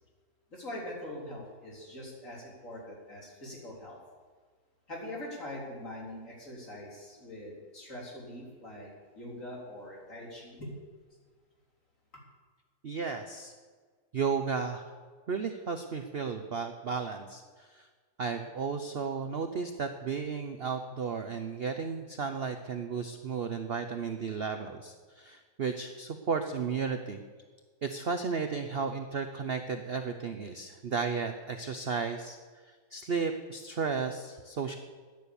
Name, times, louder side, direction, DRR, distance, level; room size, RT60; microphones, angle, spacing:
voice 1, 0.5-4.0 4.9-10.7, left 1 dB, 40° left, -3 dB, 4.1 m, -43 dB
voice 2, 12.8-13.5 14.1-14.8 15.3-17.9 18.2-27.2 27.8-32.4 32.9-34.8, right 5 dB, 60° right, 7 dB, 0.6 m, -34 dB
14.0 x 9.8 x 7.0 m, 1.5 s
omnidirectional pair, 2.0 m